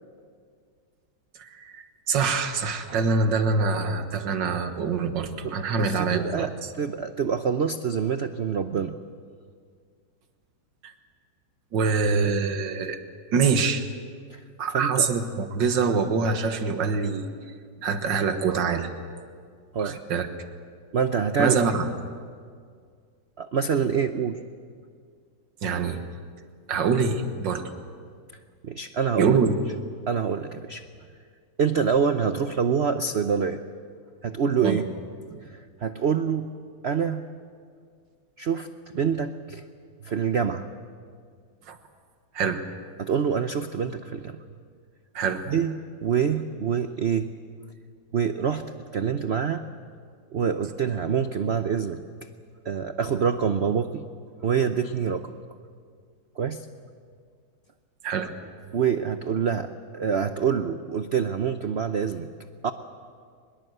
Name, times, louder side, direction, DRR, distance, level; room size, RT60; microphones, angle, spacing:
voice 1, 1.4-6.7 10.8-10.9 11.7-13.0 13.3-13.9 14.6-17.3 17.8-18.9 19.8-20.3 21.4-21.9 25.6-26.0 26.7-27.6 29.2-29.6 34.6-34.8 35.3-35.4 41.7-41.8 42.3-42.6 45.1-45.5 58.0-58.3, right 5 dB, 65° right, 8 dB, 2.1 m, -25 dB
voice 2, 5.8-6.5 6.8-8.9 14.3-14.4 14.7-15.1 19.7-20.0 20.9-21.6 23.4-24.4 28.6-29.4 30.1-30.8 31.6-33.6 34.2-34.8 35.5-36.5 36.8-37.2 38.4-38.7 38.9-39.6 40.0-40.7 43.0-44.4 45.5-45.8 46.0-47.3 48.1-48.7 48.9-49.6 50.3-52.0 52.6-54.0 54.4-55.4 56.4-56.6 58.7-62.3 62.6-62.7, right 7 dB, 80° right, 9 dB, 0.5 m, -26 dB
23.5 x 22.0 x 8.0 m, 2.1 s
omnidirectional pair, 2.2 m